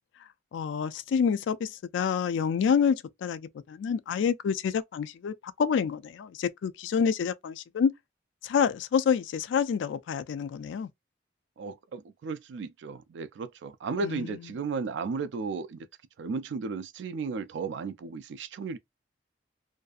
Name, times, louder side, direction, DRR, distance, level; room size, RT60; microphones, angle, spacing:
voice 1, 0.5-7.9 8.4-10.9 14.0-14.2, left 7 dB, 85° left, 0.3 m, -28 dB
voice 2, 11.6-15.8 16.2-18.8, right 4 dB, 75° right, 0.3 m, -34 dB
2.6 x 2.4 x 2.3 m
head